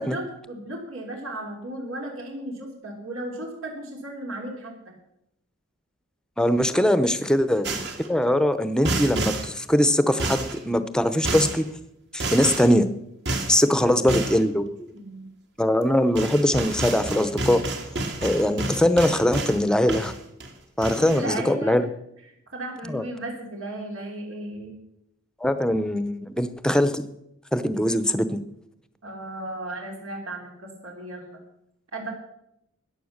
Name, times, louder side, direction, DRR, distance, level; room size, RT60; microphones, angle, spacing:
voice 1, 0.0-4.9 6.7-7.1 13.7-14.3 14.9-15.3 21.0-21.9 22.2-24.8 29.0-31.4 31.9-32.1, right 1 dB, 80° right, 1 dB, 3.1 m, -35 dB
voice 2, 6.4-7.8 8.1-11.7 12.1-12.9 13.5-14.9 15.6-17.6 18.2-20.1 20.8-21.9 22.9-23.0 25.4-27.0 27.5-28.4, left 1 dB, 5° left, 12 dB, 0.7 m, -21 dB
sound 1, 7.6-8.1 8.8-9.5 10.2-10.6 11.2-11.6 12.2-12.7 13.3-13.6 14.1-14.4 15.8-15.9 16.2-19.6 19.9-20.5 20.8-21.2, right 2 dB, 55° right, 2.0 m, -29 dB
14.5 x 9.8 x 6.5 m, 0.81 s
head